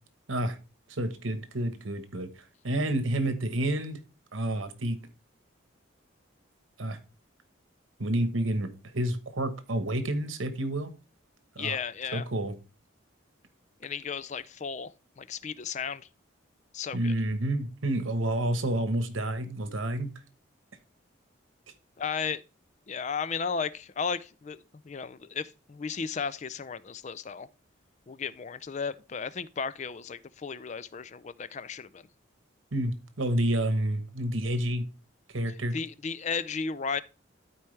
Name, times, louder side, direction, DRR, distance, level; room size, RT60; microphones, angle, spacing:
voice 1, 0.9-2.3 2.6-4.0 4.3-5.0 6.8-7.0 8.0-8.7 8.9-10.9 11.5-11.8 12.1-12.5 16.9-20.1 32.7-34.8 35.3-35.7, right 1 dB, 80° right, 1.2 m, -29 dB
voice 2, 11.6-12.3 13.8-16.1 16.7-17.1 22.0-22.4 22.9-27.5 28.1-32.0 35.5-37.0, left 6 dB, 35° left, 0.4 m, -34 dB
13.0 x 4.4 x 3.3 m
head